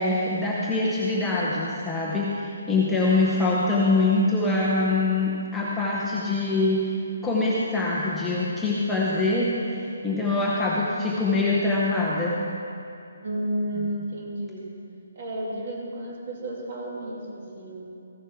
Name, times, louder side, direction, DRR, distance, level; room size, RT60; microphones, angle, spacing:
voice 1, 0.0-7.0 7.2-12.4, left 2 dB, 5° left, -7 dB, 0.7 m, -24 dB
voice 2, 13.2-14.7 15.2-17.8, right 1 dB, 35° right, -2 dB, 2.4 m, -32 dB
14.5 x 7.1 x 5.8 m, 2.5 s
hypercardioid pair, 175°, 0 cm